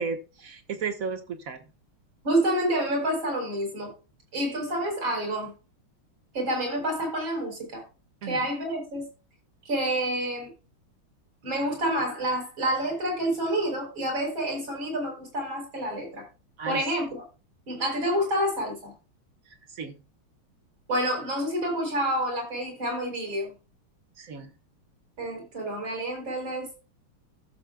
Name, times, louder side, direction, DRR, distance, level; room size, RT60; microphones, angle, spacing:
voice 1, 0.0-1.7 8.2-8.5 16.6-16.8 19.7-20.0 24.2-24.5, right 5 dB, 45° right, 7 dB, 1.7 m, -34 dB
voice 2, 2.2-3.9 4.3-5.5 6.3-7.8 8.2-9.1 9.7-10.5 11.4-16.2 16.7-17.2 17.7-18.9 20.9-23.5 25.2-26.8, right 1 dB, 65° right, 1 dB, 5.7 m, -28 dB
15.5 x 7.2 x 2.3 m, 0.31 s
omnidirectional pair, 2.3 m